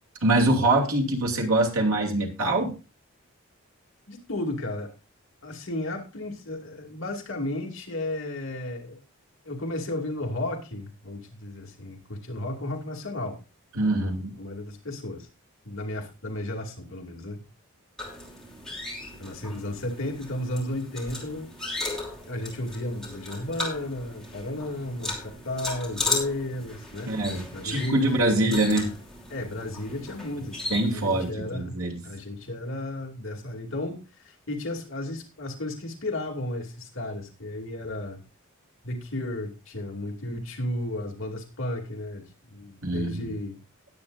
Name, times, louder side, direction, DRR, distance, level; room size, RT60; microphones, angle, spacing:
voice 1, 0.2-2.7 13.7-14.3 27.1-28.9 30.7-32.0 42.8-43.3, right 2 dB, 80° right, 0 dB, 2.8 m, -24 dB
voice 2, 4.1-4.9 5.4-9.0 9.4-13.4 13.9-15.3 15.6-17.4 19.2-21.5 22.3-27.1 27.5-28.7 29.3-38.2 38.8-43.6, left 1 dB, 65° left, 1 dB, 2.5 m, -34 dB
sound 1, 18.0-31.3, left 2 dB, 5° left, 3.0 m, -36 dB
19.0 x 8.3 x 2.5 m, 0.31 s
head